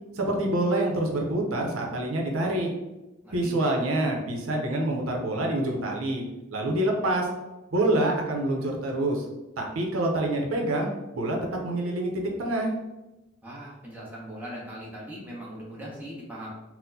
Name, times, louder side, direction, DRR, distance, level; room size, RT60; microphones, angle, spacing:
voice 1, 0.1-2.7 3.3-6.2 6.5-7.3 7.7-9.2 9.6-10.9 11.1-11.4 11.6-12.7, right 1 dB, 85° right, 1 dB, 0.6 m, -26 dB
voice 2, 3.2-3.6 13.4-16.5, equal, 10° right, -5 dB, 0.7 m, -40 dB
4.1 x 2.0 x 2.7 m, 1.0 s
head